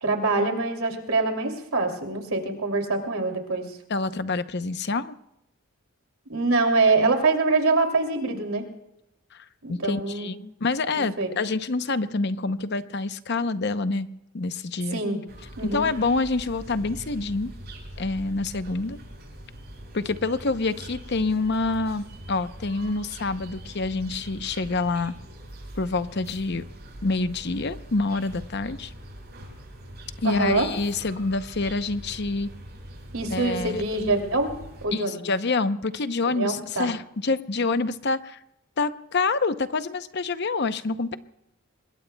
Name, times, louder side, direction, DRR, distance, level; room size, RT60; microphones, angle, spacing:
voice 1, 0.0-3.6 6.3-8.6 9.6-10.3 10.9-11.3 14.9-15.2 15.6-15.9 30.2-30.7 33.1-35.2 36.3-36.9, right 3 dB, 80° right, 4 dB, 2.8 m, -24 dB
voice 2, 3.9-5.2 9.3-14.1 14.3-15.0 15.6-17.5 18.0-19.0 19.9-25.1 25.7-26.6 27.0-28.9 30.2-32.5 33.3-33.8 34.9-38.4 38.8-41.2, left 3 dB, 50° left, 11 dB, 0.7 m, -27 dB
sound 1, 15.3-34.9, right 1 dB, 50° right, 7.6 m, -42 dB
26.0 x 21.5 x 2.3 m, 0.83 s
head